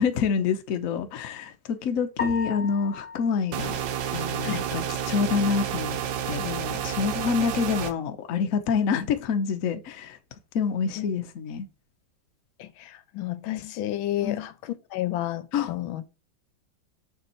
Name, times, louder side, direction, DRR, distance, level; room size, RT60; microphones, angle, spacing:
voice 1, 0.0-3.7 4.1-6.0 6.3-10.2 10.5-11.7 14.2-14.4 15.5-15.7, left 6 dB, 60° left, 0.9 m, -27 dB
sound 1, 2.2-4.7, left 5 dB, 30° left, 1.7 m, -37 dB
sound 2, 3.5-7.9, right 9 dB, 70° right, 1.3 m, -30 dB
voice 2, 12.6-16.2, left 14 dB, 85° left, 1.4 m, -31 dB
6.6 x 3.6 x 4.3 m
omnidirectional pair, 2.2 m